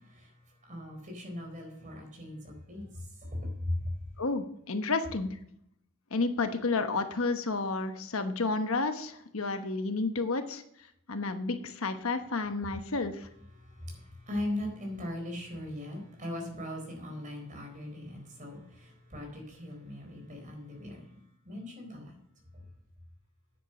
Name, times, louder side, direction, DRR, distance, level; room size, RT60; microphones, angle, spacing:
voice 1, 0.7-2.9 3.4-3.7 13.9-14.0 14.3-21.2 21.5-22.0, left 1 dB, 35° right, 1 dB, 4.2 m, -39 dB
voice 2, 4.2-5.3 6.1-10.6 11.1-13.3, left 3 dB, 70° left, 8 dB, 1.1 m, -31 dB
9.7 x 8.2 x 6.6 m, 0.71 s
head